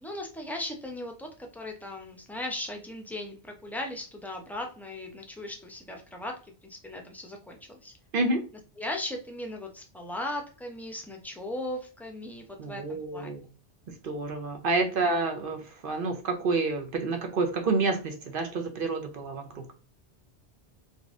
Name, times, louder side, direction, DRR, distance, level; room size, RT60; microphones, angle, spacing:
voice 1, 0.0-7.9 8.8-13.3 14.9-15.1, left 1 dB, ahead, 2 dB, 0.5 m, -38 dB
voice 2, 12.6-13.4 14.0-19.7, right 3 dB, 55° right, 4 dB, 0.9 m, -29 dB
4.1 x 2.5 x 3.5 m, 0.36 s
omnidirectional pair, 1.1 m